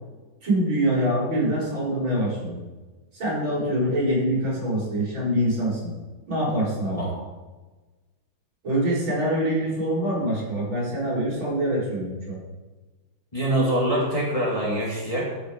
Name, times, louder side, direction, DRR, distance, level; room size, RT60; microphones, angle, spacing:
voice 1, 0.4-2.6 3.1-5.9 6.3-7.0 8.6-12.4, right 1 dB, 65° right, -5 dB, 5.3 m, -25 dB
voice 2, 13.3-15.2, right 1 dB, 15° left, -4 dB, 2.1 m, -24 dB
13.5 x 6.4 x 5.2 m, 1.2 s
omnidirectional pair, 2.3 m